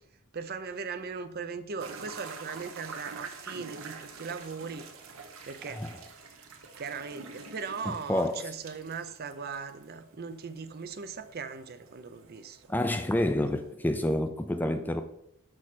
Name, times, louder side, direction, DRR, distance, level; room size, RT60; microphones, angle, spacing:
voice 1, 0.3-4.9 5.4-5.8 6.8-12.6, right 5 dB, 45° right, 0.5 m, -39 dB
sound 1, 1.8-13.7, right 4 dB, 70° right, 1.0 m, -47 dB
voice 2, 7.9-8.4 12.7-15.0, left 1 dB, 10° left, 0.3 m, -28 dB
6.3 x 6.1 x 4.1 m
head